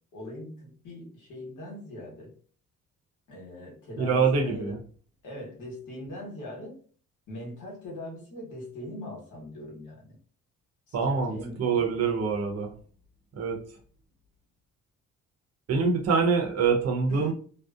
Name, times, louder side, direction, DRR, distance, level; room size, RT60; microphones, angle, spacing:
voice 1, 0.1-2.3 3.3-4.8 5.2-6.7 7.3-10.1 10.9-11.9 17.1-17.3, left 1 dB, 80° left, -2 dB, 1.2 m, -41 dB
voice 2, 4.0-4.8 10.9-12.7 13.3-13.6 15.7-17.3, right 5 dB, 55° right, 1 dB, 0.7 m, -25 dB
2.7 x 2.0 x 2.3 m, 0.43 s
cardioid pair, 90°, 30 cm